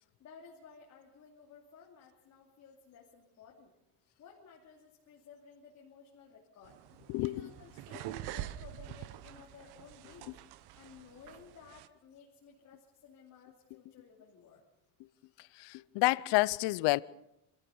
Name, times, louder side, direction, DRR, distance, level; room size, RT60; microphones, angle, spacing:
voice 1, 0.2-3.7 4.2-6.8 7.2-10.3 10.7-14.6, left 6 dB, 40° left, 2.9 m, -56 dB
sound 1, 6.6-11.9, right 13 dB, 65° right, 1.0 m, -46 dB
voice 2, 7.1-7.5 15.6-17.0, left 21 dB, 75° left, 0.7 m, -29 dB
26.0 x 14.5 x 7.0 m
cardioid pair, 160°, 41 cm